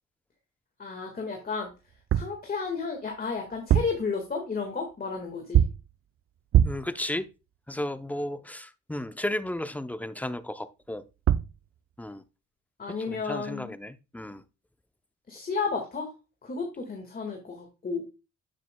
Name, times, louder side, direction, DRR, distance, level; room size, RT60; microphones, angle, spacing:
voice 1, 0.8-1.7 2.1-5.7 12.8-13.7 15.3-16.1 16.4-18.0, left 4 dB, 30° left, 1.7 m, -32 dB
sound 1, 1.9-2.4 3.5-4.1 5.5-5.9 6.5-6.9 11.0-11.1 11.3-11.6, right 10 dB, 50° right, 0.5 m, -23 dB
voice 2, 6.6-7.3 7.7-11.0 12.0-12.2 13.1-14.4, left 1 dB, 5° left, 0.6 m, -34 dB
9.4 x 7.5 x 2.2 m
cardioid pair, 90°, 30 cm